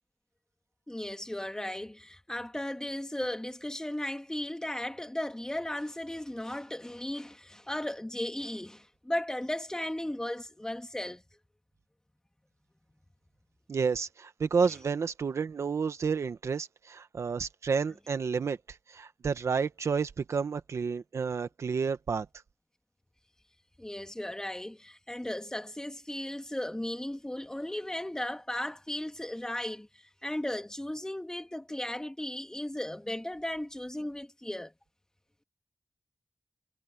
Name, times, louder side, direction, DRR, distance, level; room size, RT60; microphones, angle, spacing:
voice 1, 0.9-11.2 23.8-29.9 30.2-34.7, left 1 dB, 15° left, 2.0 m, -36 dB
voice 2, 13.7-22.3, right 5 dB, 85° right, 1.2 m, -30 dB
wide cardioid pair, 75°, 5 cm